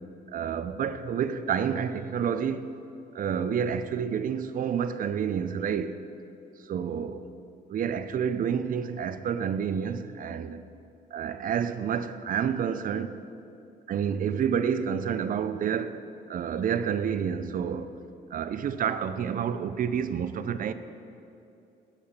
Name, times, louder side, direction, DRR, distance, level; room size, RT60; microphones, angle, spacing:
voice 1, 0.3-2.7 3.1-5.9 6.7-7.2 7.7-10.6 11.1-13.2 13.9-16.0 16.3-17.9 18.3-20.7, right 7 dB, 45° right, 0.4 m, -29 dB
7.1 x 4.8 x 5.7 m
cardioid pair, 90°, 20 cm